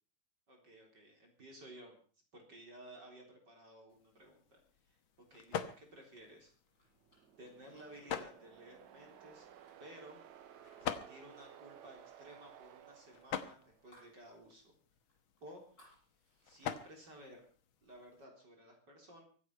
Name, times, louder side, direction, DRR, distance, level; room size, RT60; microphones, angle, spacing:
voice 1, 0.5-2.0 2.3-4.6 4.9-5.0 5.3-6.5 7.4-9.5 9.8-10.3 10.8-14.7 15.4-15.8 16.4-17.4 17.8-19.2, right 1 dB, 30° right, 1 dB, 4.2 m, -55 dB
sound 1, 3.9-18.2, left 8 dB, 60° left, 1.4 m, -47 dB
sound 2, 6.2-10.8 11.2-11.5 11.8-14.2 14.6-14.7 15.1-16.6, equal, 20° left, 7.7 m, -69 dB
sound 3, 6.9-14.0, right 10 dB, 70° right, 2.4 m, -58 dB
24.0 x 9.5 x 5.6 m, 0.41 s
omnidirectional pair, 3.6 m